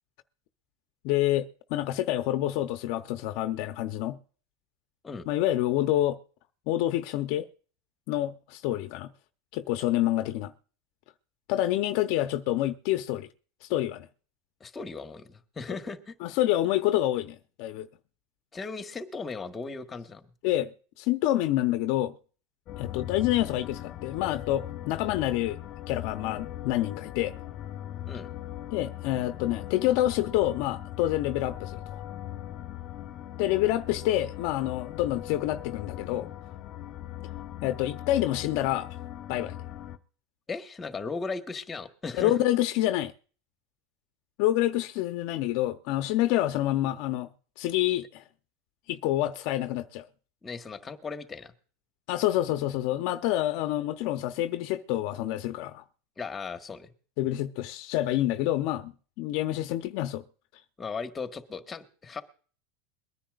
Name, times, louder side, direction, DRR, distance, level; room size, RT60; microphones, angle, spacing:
voice 1, 1.0-4.2 5.3-6.2 6.7-7.5 8.1-9.1 9.5-10.5 11.5-13.3 13.6-14.1 16.2-17.9 20.4-20.7 21.0-22.1 22.8-25.6 25.9-27.4 28.7-32.0 33.4-36.3 37.6-38.9 39.3-39.5 42.2-43.1 44.4-47.3 47.6-48.2 48.9-50.1 52.1-55.8 57.2-58.9 59.2-60.2, left 14 dB, 60° left, 0.8 m, -27 dB
voice 2, 14.6-16.1 18.5-20.2 28.0-28.3 40.5-42.4 50.4-51.5 56.2-56.9 60.8-62.2, left 4 dB, 15° left, 1.5 m, -37 dB
sound 1, 22.7-40.0, left 13 dB, 40° left, 1.1 m, -40 dB
22.5 x 10.0 x 2.5 m
supercardioid pair, 135°, 0 cm